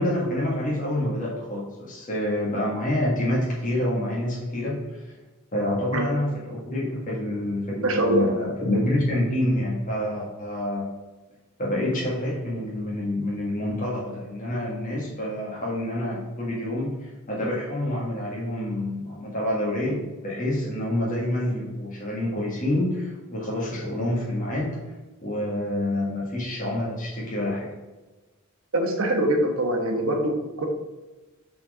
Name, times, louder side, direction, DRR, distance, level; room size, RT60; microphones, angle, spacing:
voice 1, 0.0-5.0 5.5-10.9 11.6-24.8 25.2-27.7, left 1 dB, 40° left, -5 dB, 1.8 m, -27 dB
voice 2, 7.8-8.3 28.7-30.7, right 1 dB, 80° right, 3 dB, 1.1 m, -23 dB
5.8 x 4.4 x 4.9 m, 1.2 s
head